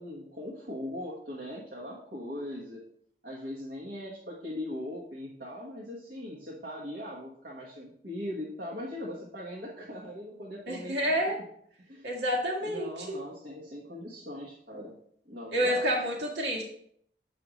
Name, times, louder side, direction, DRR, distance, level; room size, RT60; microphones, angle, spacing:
voice 1, 0.0-2.8 3.2-11.2 11.9-12.1 12.6-14.9 15.2-15.8, left 1 dB, 65° right, -5 dB, 1.2 m, -40 dB
voice 2, 10.7-11.4 12.0-13.2 15.5-16.6, equal, 85° right, -2 dB, 1.8 m, -29 dB
7.6 x 5.1 x 3.0 m, 0.66 s
head